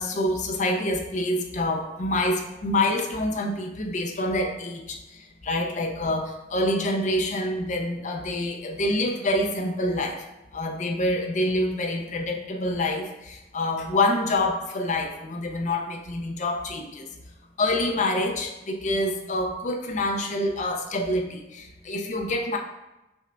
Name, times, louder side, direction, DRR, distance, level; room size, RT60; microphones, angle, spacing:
voice 1, 0.0-5.0 5.4-10.2 10.5-17.0 17.6-22.6, left 1 dB, 40° left, 2 dB, 0.5 m, -26 dB
6.2 x 2.5 x 3.2 m, 0.98 s
head